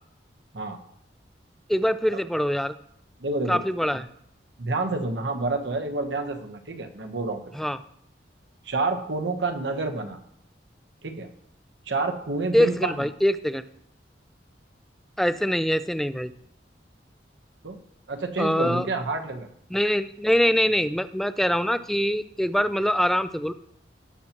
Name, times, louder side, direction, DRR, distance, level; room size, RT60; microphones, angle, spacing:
voice 1, 1.7-2.7 3.5-4.0 7.6-7.8 12.5-13.6 15.2-16.3 18.4-18.9 19.7-23.5, equal, ahead, 12 dB, 0.3 m, -23 dB
voice 2, 3.2-3.6 3.9-4.0 4.6-7.4 8.6-10.2 11.0-11.3 11.9-13.0 17.6-17.8 18.1-19.5, right 3 dB, 80° right, 5 dB, 1.0 m, -28 dB
17.0 x 5.8 x 3.0 m, 0.71 s
head